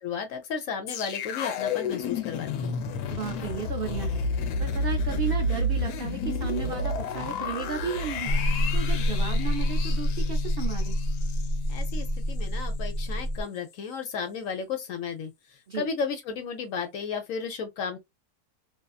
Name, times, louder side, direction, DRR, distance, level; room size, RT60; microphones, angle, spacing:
voice 1, 0.0-2.8 11.7-15.3 15.7-18.0, left 6 dB, 65° left, 1.0 m, -33 dB
sound 1, 0.9-12.1 12.4-12.5, left 2 dB, 85° left, 1.2 m, -31 dB
voice 2, 3.1-8.3 8.7-10.9 15.7-15.9, right 6 dB, 80° right, 0.5 m, -34 dB
sound 2, 8.3-13.4, left 1 dB, 15° left, 0.9 m, -27 dB
2.7 x 2.5 x 2.3 m
omnidirectional pair, 1.7 m